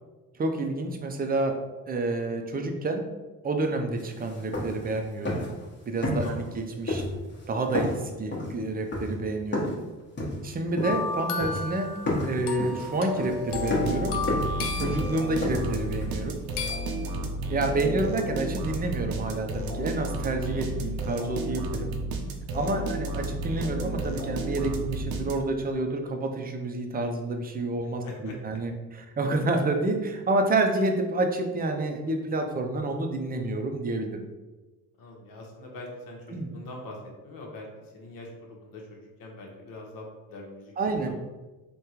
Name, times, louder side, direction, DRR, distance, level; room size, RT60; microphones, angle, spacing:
voice 1, 0.3-1.6 1.9-3.0 3.4-5.4 5.9-7.0 7.5-9.8 10.4-11.9 12.2-14.2 14.7-16.4 17.5-21.9 22.5-34.2 36.3-36.5 40.8-41.2, right 2 dB, 25° right, 4 dB, 0.4 m, -29 dB
sound 1, 4.0-4.1 4.3-4.9 5.2-5.6 6.0-6.6 6.9-7.4 7.7-9.8 10.2-11.1 11.4-11.8 12.1-16.1, left 1 dB, 30° left, 1.0 m, -31 dB
voice 2, 6.2-6.5 17.0-17.4 22.7-23.0 28.0-28.4 35.0-37.0 37.2-41.2, left 2 dB, 65° left, 0 dB, 0.9 m, -43 dB
sound 2, 10.8-15.6 16.6-17.1, left 4 dB, 85° left, 0.5 m, -33 dB
sound 3, 13.5-25.7, right 1 dB, 70° right, 0.6 m, -32 dB
3.5 x 2.2 x 2.8 m, 1.2 s
supercardioid pair, 80°, 37 cm